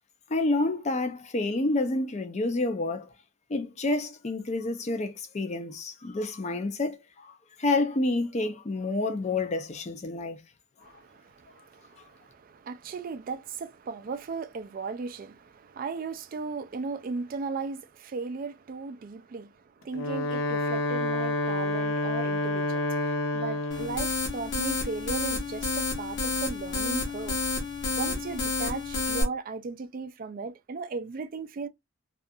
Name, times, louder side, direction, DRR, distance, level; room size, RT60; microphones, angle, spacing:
voice 1, 0.3-3.1 3.5-10.4, left 2 dB, 35° left, 0.4 m, -29 dB
voice 2, 10.8-27.4 28.0-31.7, right 4 dB, 45° right, 0.3 m, -37 dB
Wind instrument woodwind instrument, 19.8-24.0, left 2 dB, 85° left, 0.6 m, -28 dB
sound 1, 23.7-29.2, left 3 dB, 60° left, 1.0 m, -30 dB
2.4 x 2.3 x 2.6 m
head